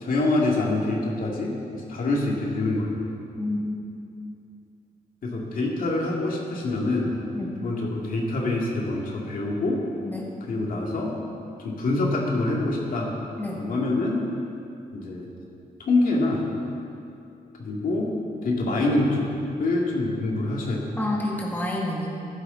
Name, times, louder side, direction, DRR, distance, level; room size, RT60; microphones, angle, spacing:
voice 1, 0.0-2.9 5.2-7.1 7.6-9.8 10.5-11.1 11.6-13.1 13.6-14.2 14.9-15.3 15.8-16.4 17.6-18.1 18.4-19.3 19.6-20.8, left 2 dB, 65° left, -2 dB, 2.4 m, -25 dB
voice 2, 3.4-3.8 7.3-7.6 10.0-10.3 13.4-13.7 21.0-22.1, left 1 dB, 10° left, -3 dB, 1.9 m, -29 dB
15.0 x 11.5 x 4.0 m, 2.6 s
cardioid pair, 100°, 15 cm